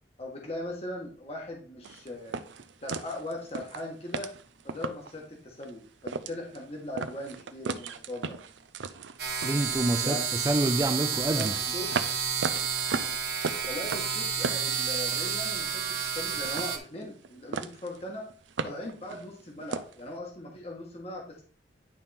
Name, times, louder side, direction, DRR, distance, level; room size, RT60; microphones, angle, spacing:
voice 1, 0.2-2.4 2.8-4.3 4.6-8.4 10.0-10.3 11.3-12.0 13.7-18.2 18.6-21.4, left 1 dB, 35° left, 1.4 m, -39 dB
sound 1, 1.8-5.2 5.6-5.7 6.0-6.6 7.0-10.1 10.6-15.4 15.6-16.2 16.4-17.3 17.5-18.0 18.3-20.0, right 4 dB, 80° right, 0.6 m, -36 dB
sound 2, 9.2-16.8, right 7 dB, 60° right, 1.3 m, -30 dB
voice 2, 9.4-11.5, right 2 dB, 20° right, 0.3 m, -27 dB
10.0 x 3.6 x 4.2 m
head